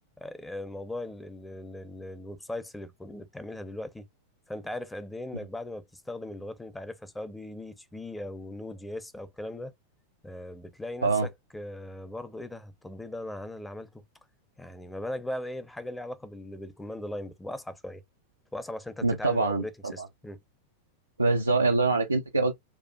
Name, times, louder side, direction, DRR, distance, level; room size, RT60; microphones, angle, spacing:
voice 1, 0.2-4.0 4.5-9.7 10.2-14.0 14.6-18.0 18.5-20.4, left 1 dB, 5° left, 0.6 m, -39 dB
voice 2, 19.0-20.1 21.2-22.5, right 3 dB, 80° right, 0.4 m, -25 dB
4.5 x 2.4 x 2.3 m
figure-of-eight pair, 90°, 0 cm